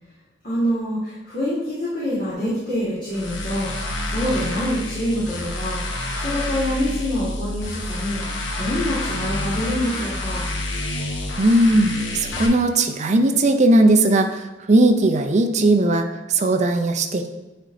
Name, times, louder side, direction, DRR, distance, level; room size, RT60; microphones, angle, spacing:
voice 1, 0.4-5.8 6.2-8.2 8.6-10.4, equal, 50° left, -10 dB, 1.7 m, -26 dB
sound 1, 3.1-12.5, left 1 dB, 85° left, 1.0 m, -28 dB
voice 2, 11.4-14.4 14.7-17.3, right 2 dB, 40° right, 6 dB, 0.5 m, -18 dB
9.1 x 4.4 x 2.6 m, 1.1 s
head